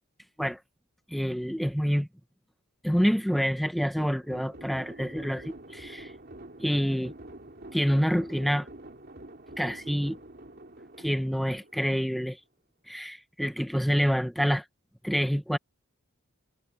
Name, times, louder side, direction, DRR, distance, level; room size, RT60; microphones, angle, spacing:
voice 1, 1.1-2.1 2.8-6.1 6.6-7.1 7.7-8.7 9.6-10.2 11.0-12.4 12.9-14.6 15.0-15.6, equal, ahead, 0.7 m, -27 dB
sound 1, 4.0-12.3, right 1 dB, 45° right, 3.1 m, -47 dB
head